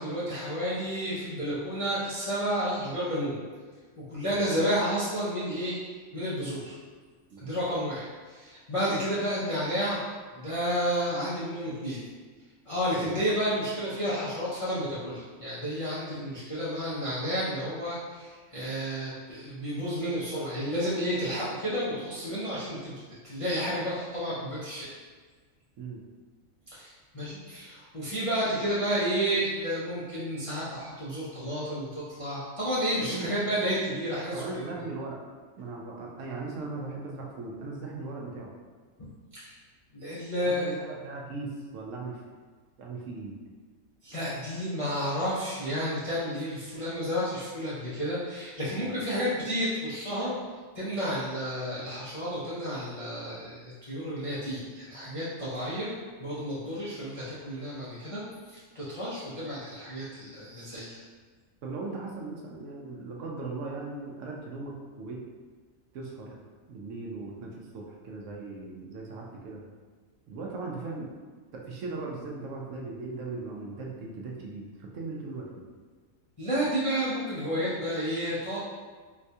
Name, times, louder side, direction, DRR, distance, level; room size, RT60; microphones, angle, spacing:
voice 1, 0.0-3.4 4.0-5.7 6.1-6.8 7.4-10.0 10.3-12.0 12.7-22.9 23.2-24.9 26.7-34.7 39.3-39.5 39.9-40.8 44.0-50.3 50.7-55.9 56.2-58.2 58.7-61.0 76.4-78.6, equal, 45° left, -10 dB, 0.4 m, -31 dB
voice 2, 7.3-7.6 13.0-13.1 25.8-26.0 33.0-33.3 34.3-35.2 35.6-38.5 40.4-42.2 42.8-43.4 48.8-49.0 61.6-65.2 65.9-66.4 66.7-69.6 70.3-71.2 71.5-75.6, right 3 dB, 70° right, -2 dB, 0.9 m, -38 dB
4.0 x 2.2 x 2.7 m, 1.5 s
omnidirectional pair, 1.4 m